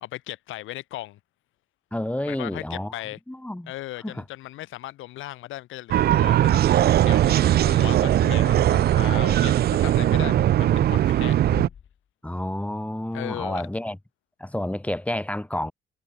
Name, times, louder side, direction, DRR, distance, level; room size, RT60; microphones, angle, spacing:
voice 1, 0.0-1.2 2.2-3.2 3.7-11.4 13.1-13.6, left 15 dB, 90° left, 2.9 m, -37 dB
voice 2, 1.9-2.9 3.3-3.7 4.0-4.2 10.1-10.9 12.2-14.0 14.4-15.7, left 1 dB, 5° left, 4.2 m, -30 dB
sound 1, 5.9-11.7, right 12 dB, 55° right, 0.4 m, -19 dB
Thump thud, 8.1-8.7 11.4-12.0, left 8 dB, 50° left, 1.9 m, -39 dB
cardioid pair, 90°, 20 cm